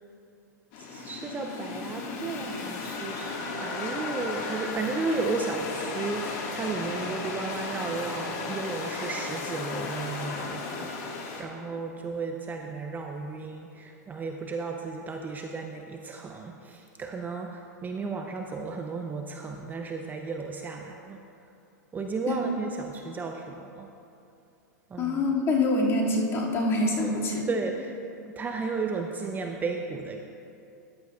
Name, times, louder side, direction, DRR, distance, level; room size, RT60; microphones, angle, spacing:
sound 1, 0.7-11.4, left 4 dB, 50° left, 1.7 m, -35 dB
voice 1, 0.8-21.2 21.9-23.9 24.9-25.3 27.0-27.1 27.5-27.9 28.4-30.2, right 4 dB, 20° right, 3 dB, 0.6 m, -34 dB
voice 2, 25.0-27.5, left 2 dB, 30° left, -3 dB, 2.2 m, -25 dB
14.0 x 11.0 x 2.4 m, 2.6 s
hypercardioid pair, 115°, 10 cm